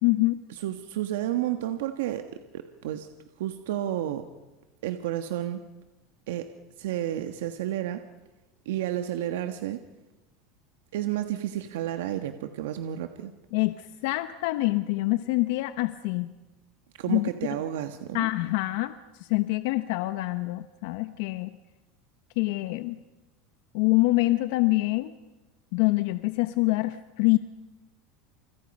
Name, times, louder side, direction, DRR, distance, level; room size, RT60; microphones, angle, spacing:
voice 1, 0.0-0.4 13.5-16.3 17.1-17.2 18.1-18.9 19.2-21.5 22.4-23.0 23.7-25.1 25.7-27.4, left 20 dB, 70° left, 11 dB, 1.0 m, -25 dB
voice 2, 0.6-2.3 2.5-3.1 3.4-4.3 4.8-5.6 6.3-6.5 6.8-8.0 8.6-9.8 10.9-13.3 17.0-18.3, right 12 dB, 90° right, 8 dB, 1.4 m, -31 dB
30.0 x 29.0 x 5.5 m, 1.1 s
supercardioid pair, 155°, 0 cm